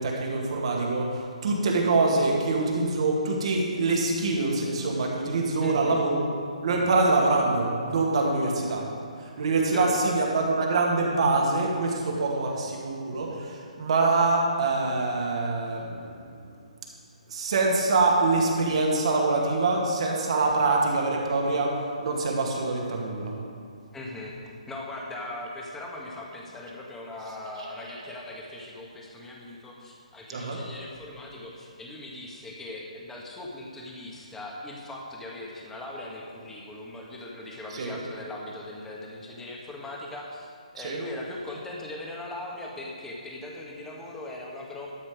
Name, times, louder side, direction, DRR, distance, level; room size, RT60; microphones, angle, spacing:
voice 1, 0.0-6.2 6.6-8.9 9.2-16.2 17.3-23.3 30.3-30.6 37.7-37.9 40.8-41.0, right 3 dB, 50° right, -1 dB, 2.3 m, -25 dB
voice 2, 5.6-6.0 9.7-9.9 23.9-24.3 24.7-40.5 40.7-44.9, left 2 dB, 10° left, -2 dB, 1.6 m, -39 dB
12.5 x 7.4 x 5.1 m, 2.3 s
figure-of-eight pair, 140°, 4 cm